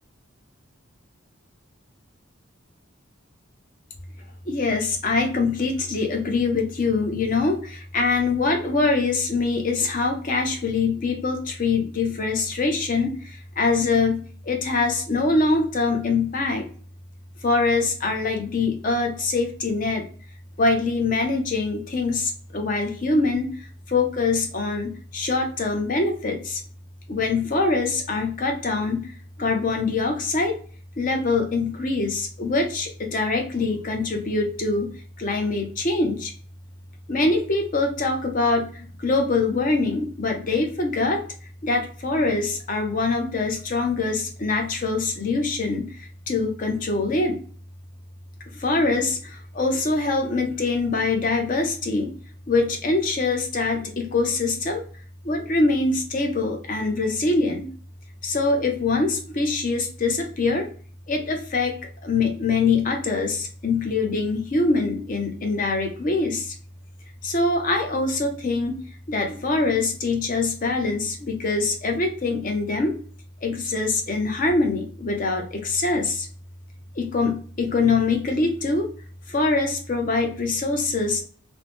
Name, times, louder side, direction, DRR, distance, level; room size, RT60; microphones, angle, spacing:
voice 1, 4.5-16.6 17.4-20.0 20.6-23.5 23.9-26.6 27.1-29.1 29.4-30.6 31.0-34.9 35.2-36.3 37.1-41.2 41.6-47.4 48.5-52.1 52.5-54.8 55.2-57.7 58.2-60.7 61.1-61.7 62.0-66.5 67.2-68.8 69.1-72.9 73.4-76.3 77.0-78.9 79.3-81.2, left 3 dB, 40° left, 3 dB, 0.6 m, -24 dB
2.9 x 2.0 x 2.8 m, 0.43 s
head